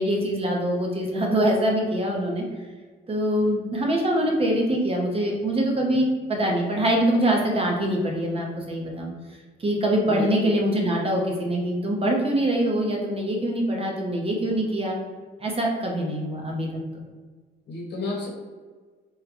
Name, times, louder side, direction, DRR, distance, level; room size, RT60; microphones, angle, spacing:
voice 1, 0.0-2.4 3.1-9.1 9.6-15.0 15.4-16.7, right 1 dB, 30° right, 0 dB, 0.8 m, -24 dB
voice 2, 10.0-10.5 17.7-18.3, left 2 dB, 60° left, -2 dB, 1.2 m, -31 dB
3.7 x 2.2 x 3.0 m, 1.4 s
cardioid pair, 90°, 20 cm